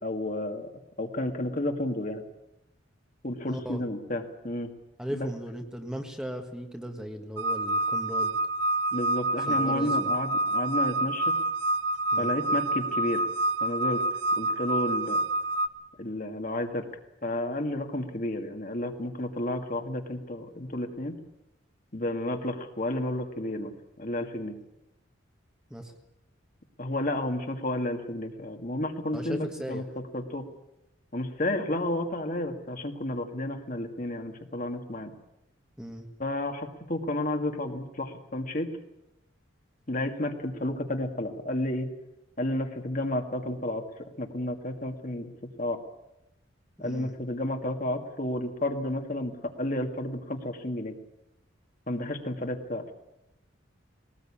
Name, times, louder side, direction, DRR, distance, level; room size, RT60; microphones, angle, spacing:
voice 1, 0.0-0.7 1.0-2.2 3.2-4.7 5.1-5.3 8.9-11.3 12.2-13.2 13.6-14.0 14.4-15.2 16.0-16.9 17.2-21.2 21.9-23.7 24.0-24.6 26.8-30.5 31.1-35.1 36.2-38.7 39.9-41.9 42.4-43.8 44.2-45.3 45.6-45.8 46.8-51.0 51.9-52.9, left 1 dB, 40° left, 4 dB, 2.0 m, -31 dB
voice 2, 3.5-3.8 5.0-8.3 9.5-10.0 12.1-12.3 25.7-25.9 29.1-29.9 35.8-36.1 46.8-47.1, equal, 5° right, 4 dB, 1.6 m, -37 dB
sound 1, 7.4-15.7, right 2 dB, 60° right, 0.9 m, -27 dB
21.0 x 19.0 x 8.7 m, 0.89 s
head